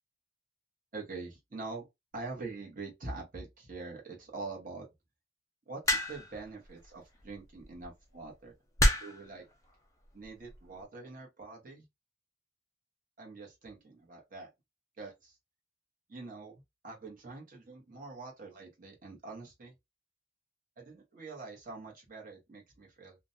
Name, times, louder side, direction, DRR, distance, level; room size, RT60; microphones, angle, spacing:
voice 1, 0.9-1.9 2.1-4.9 5.7-8.5 9.0-9.5 10.1-11.8 13.2-14.5 15.0-15.3 16.1-16.5 16.8-19.7 20.8-23.2, right 3 dB, 50° right, 1.0 m, -44 dB
sound 1, 5.9-6.4 7.6-7.9 8.8-9.3 10.2-10.6, left 1 dB, 15° left, 0.5 m, -27 dB
2.5 x 2.1 x 2.5 m
head